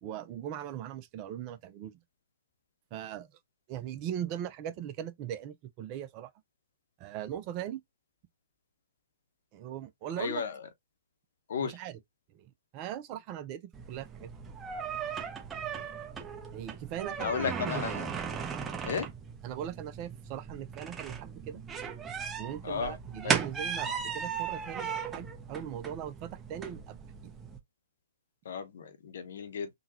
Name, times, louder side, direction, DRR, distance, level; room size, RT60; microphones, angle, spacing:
voice 1, 0.0-2.0 2.9-3.3 3.7-6.3 7.0-7.8 9.5-10.4 11.6-12.0 12.3-14.6 15.0-15.4 16.5-17.8 19.4-21.6 22.4-27.4, right 10 dB, 35° right, 0.5 m, -40 dB
voice 2, 10.2-10.5 11.5-11.7 17.2-18.1 18.9-19.1 22.6-23.0 28.4-29.7, left 6 dB, 60° left, 0.8 m, -34 dB
sound 1, 13.7-27.6, right 6 dB, 15° right, 0.8 m, -37 dB
3.8 x 2.3 x 2.8 m
figure-of-eight pair, 120°, 0 cm